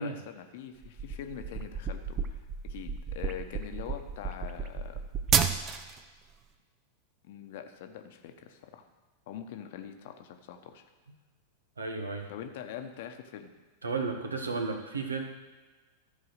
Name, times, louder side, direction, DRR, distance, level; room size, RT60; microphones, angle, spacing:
voice 1, 0.0-5.0 7.2-8.9 9.3-10.8 12.3-13.5, left 9 dB, 50° left, 7 dB, 1.0 m, -43 dB
sound 1, 0.8-6.0, right 7 dB, 30° right, 0.6 m, -32 dB
voice 2, 11.8-12.3 13.8-15.2, right 4 dB, 75° right, 5 dB, 1.2 m, -33 dB
13.5 x 4.8 x 6.6 m, 1.3 s
figure-of-eight pair, 90°, 0 cm